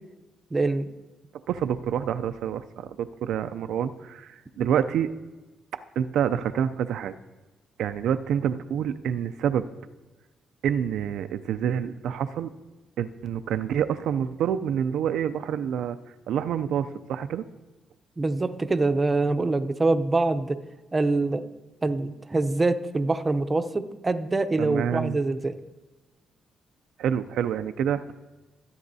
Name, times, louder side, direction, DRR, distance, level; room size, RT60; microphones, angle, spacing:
voice 1, 0.5-0.9 18.2-20.6 20.9-21.4 21.8-25.5, right 3 dB, 25° right, 9 dB, 0.6 m, -24 dB
voice 2, 1.5-5.1 5.7-7.1 7.8-9.7 10.6-12.5 13.0-16.0 16.3-17.4 24.6-25.2 27.0-28.1, right 9 dB, 75° right, 10 dB, 0.4 m, -27 dB
16.0 x 9.5 x 2.7 m, 1.2 s
cardioid pair, 90°, 0 cm